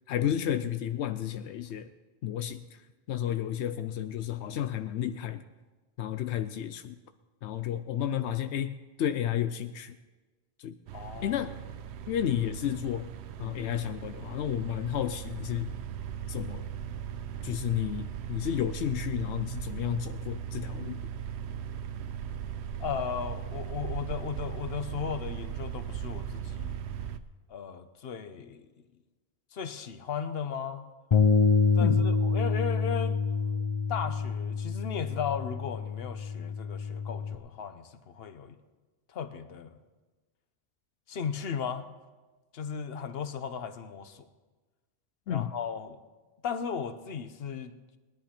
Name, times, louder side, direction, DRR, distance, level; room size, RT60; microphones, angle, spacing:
voice 1, 0.1-1.9 2.2-2.8 3.1-5.4 6.0-7.0 7.4-9.9 10.6-10.8 11.2-11.5 12.1-13.1 13.4-15.8 16.3-16.7 17.4-21.0 31.8-32.0 45.3-45.5, left 10 dB, 85° left, 10 dB, 0.9 m, -32 dB
voice 2, 10.9-11.4 22.8-26.8 27.5-28.7 29.5-30.9 31.7-33.2 33.9-38.6 39.1-39.8 41.1-41.9 42.5-44.2 45.3-46.0 46.4-48.0, left 7 dB, 65° left, 10 dB, 1.0 m, -36 dB
sound 1, 10.9-27.2, right 9 dB, 85° right, 0.9 m, -38 dB
Bass guitar, 31.1-37.4, left 5 dB, 40° left, 0.4 m, -27 dB
19.0 x 10.5 x 4.3 m, 1.3 s
omnidirectional pair, 1.1 m